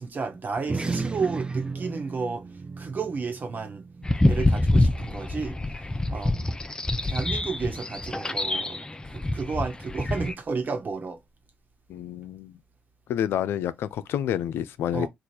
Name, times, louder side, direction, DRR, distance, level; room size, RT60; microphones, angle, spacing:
voice 1, 0.0-3.9 4.2-6.5 7.0-11.2 14.9-15.1, right 4 dB, 50° right, 1.2 m, -32 dB
sound 1, 0.6-5.4, right 4 dB, 25° right, 0.6 m, -35 dB
sound 2, 4.0-10.3, left 1 dB, 20° left, 0.6 m, -26 dB
voice 2, 11.9-12.6 13.1-15.1, left 10 dB, 80° left, 0.3 m, -28 dB
3.2 x 2.4 x 4.2 m
supercardioid pair, 50°, 4 cm